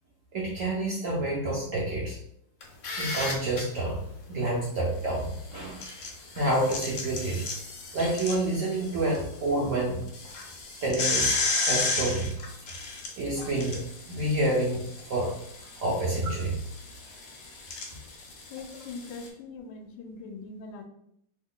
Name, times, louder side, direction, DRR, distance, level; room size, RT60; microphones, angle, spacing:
voice 1, 0.3-2.2 3.0-4.0 4.3-6.0 6.3-7.4 7.9-10.0 10.8-11.3 11.7-12.3 13.2-13.8 14.1-15.3 15.8-16.6, right 1 dB, 65° right, -4 dB, 0.8 m, -28 dB
sound 1, 2.6-3.6 5.5-9.2 9.5-9.6 10.1-19.3, left 3 dB, 60° left, 1.0 m, -33 dB
voice 2, 18.5-20.8, left 4 dB, 80° left, 5 dB, 1.2 m, -41 dB
3.1 x 2.2 x 3.6 m, 0.73 s
omnidirectional pair, 2.0 m